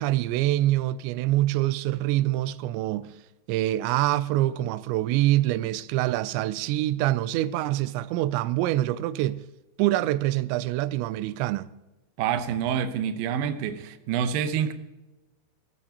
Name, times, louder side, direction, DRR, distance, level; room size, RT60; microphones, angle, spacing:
voice 1, 0.0-3.2 3.5-9.4 9.8-11.7, right 15 dB, 90° right, 2.9 m, -25 dB
voice 2, 12.2-14.7, right 8 dB, 75° right, 2.2 m, -27 dB
20.5 x 14.0 x 2.9 m
omnidirectional pair, 5.0 m